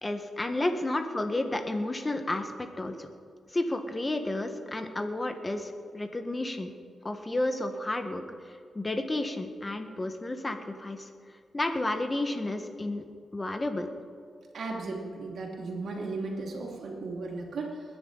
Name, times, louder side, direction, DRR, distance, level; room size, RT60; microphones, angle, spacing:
voice 1, 0.0-3.1 3.5-6.7 7.0-8.2 8.5-11.1 11.5-13.0 13.3-13.9, left 2 dB, 25° left, 6 dB, 1.6 m, -31 dB
voice 2, 14.5-17.8, right 3 dB, 75° right, -1 dB, 2.9 m, -35 dB
21.5 x 10.5 x 4.1 m, 2.2 s
cardioid pair, 85°, 0 cm